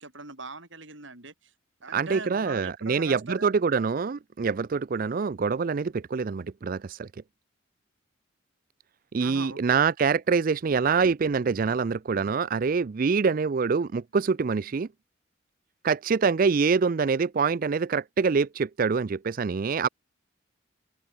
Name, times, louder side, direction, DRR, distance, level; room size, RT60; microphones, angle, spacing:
voice 1, 0.0-1.5 1.8-3.6 9.2-9.8, right 3 dB, 65° right, 7.1 m, -41 dB
voice 2, 1.9-7.1 9.1-14.9 15.8-19.9, right 5 dB, 45° right, 0.4 m, -25 dB
open air
head